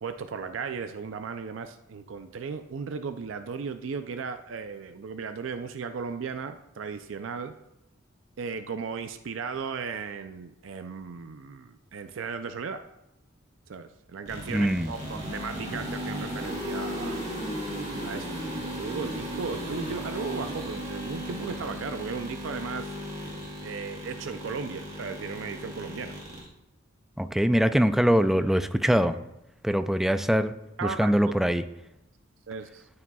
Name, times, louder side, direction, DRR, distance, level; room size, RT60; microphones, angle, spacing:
voice 1, 0.0-7.6 8.4-12.8 13.7-17.2 18.0-23.0 23.6-26.2 30.8-31.1 32.5-32.9, right 5 dB, 70° right, 9 dB, 0.4 m, -36 dB
sound 1, 14.3-26.4, equal, 40° right, 2.7 m, -36 dB
voice 2, 14.5-14.9 27.2-29.2 29.6-30.5 30.8-31.6, equal, ahead, 10 dB, 0.3 m, -23 dB
13.0 x 8.6 x 2.3 m, 0.89 s
head